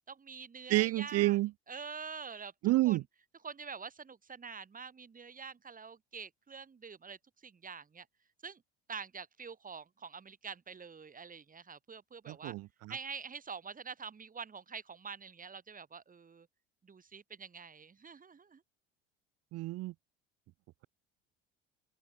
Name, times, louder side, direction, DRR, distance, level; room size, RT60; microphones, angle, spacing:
voice 1, 0.1-1.4 1.7-2.5 2.8-3.0 3.4-8.1 8.4-8.6 8.9-12.5 12.9-16.5 16.8-18.6, right 5 dB, 25° right, 6.4 m, -46 dB
voice 2, 0.7-1.5 2.6-3.0 12.3-12.7 19.5-19.9, right 18 dB, 55° right, 1.7 m, -29 dB
open air
hypercardioid pair, 65°, 30 cm